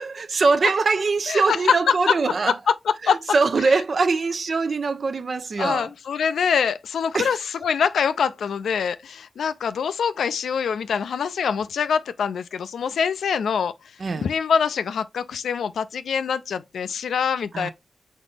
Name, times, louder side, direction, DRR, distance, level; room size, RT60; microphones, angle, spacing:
voice 1, 0.0-2.6 3.0-5.9 7.1-7.4 14.0-14.3 17.5-17.7, right 4 dB, 65° right, 0.5 m, -22 dB
voice 2, 2.9-3.2 3.6-3.7 5.6-13.7 14.2-17.7, left 6 dB, 90° left, 0.3 m, -24 dB
4.1 x 3.9 x 3.2 m
cardioid pair, 45°, 0 cm